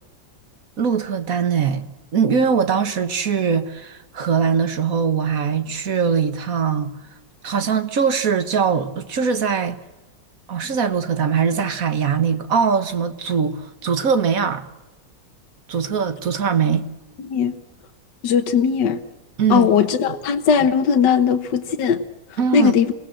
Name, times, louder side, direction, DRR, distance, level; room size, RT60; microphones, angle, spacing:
voice 1, 0.8-6.9 7.4-9.8 10.5-14.7 15.7-16.9 19.4-19.7 22.4-22.7, right 6 dB, 50° right, 1.7 m, -21 dB
voice 2, 17.2-17.6 18.2-19.0 19.5-22.0 22.3-22.9, left 7 dB, 70° left, 1.8 m, -18 dB
26.5 x 18.0 x 7.7 m
omnidirectional pair, 2.0 m